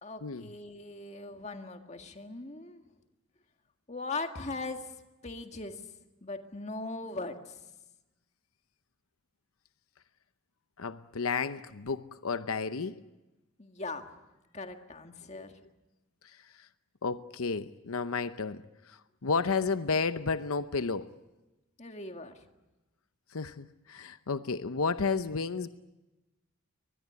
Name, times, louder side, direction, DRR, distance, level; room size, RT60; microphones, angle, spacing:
voice 1, 0.0-2.8 3.9-5.0 5.2-5.8 6.2-7.6 13.6-14.1 14.5-15.6 21.8-22.4, left 3 dB, 30° left, 1.9 m, -40 dB
voice 2, 10.8-13.0 15.3-15.5 16.2-16.7 17.0-21.1 23.3-25.7, left 4 dB, 85° left, 0.8 m, -32 dB
24.0 x 20.5 x 9.6 m
head